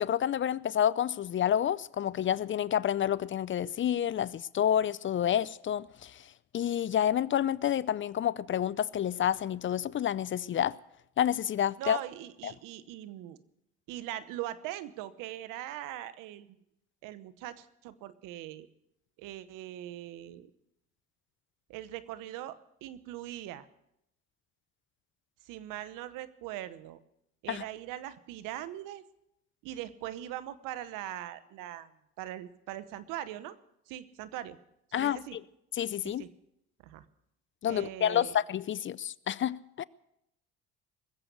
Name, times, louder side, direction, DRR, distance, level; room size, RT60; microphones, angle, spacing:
voice 1, 0.0-6.2 6.5-10.8 11.2-12.0 12.4-12.5 27.5-27.6 34.9-35.4 35.8-36.2 37.6-39.8, left 10 dB, 40° left, 0.5 m, -29 dB
voice 2, 11.8-13.4 13.9-16.5 17.0-18.7 19.2-20.5 21.7-23.7 25.4-27.0 27.4-29.0 29.6-31.9 32.2-33.6 33.9-34.6 34.9-35.4 36.0-36.3 36.8-37.0 37.7-38.3, right 13 dB, 75° right, 1.0 m, -41 dB
20.5 x 7.8 x 8.1 m
supercardioid pair, 70°, 32 cm